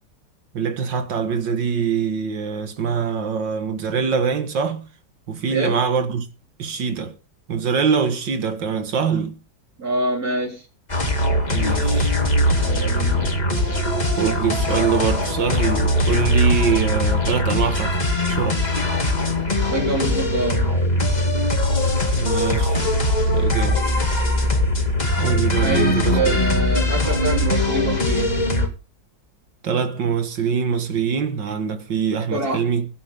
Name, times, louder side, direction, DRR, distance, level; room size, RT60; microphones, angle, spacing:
voice 1, 0.5-4.9 5.3-6.3 6.6-7.2 7.5-9.4 11.5-12.1 14.2-18.0 18.3-18.6 22.1-22.8 23.3-23.8 25.2-26.4 29.6-32.9, right 6 dB, 80° right, 2.3 m, -23 dB
voice 2, 9.8-10.6 12.6-13.4 19.7-20.7 25.6-28.4 32.3-32.6, right 2 dB, 55° right, 4.1 m, -25 dB
sound 1, 10.9-28.7, left 1 dB, 25° left, 2.3 m, -21 dB
21.5 x 9.6 x 3.6 m
omnidirectional pair, 2.0 m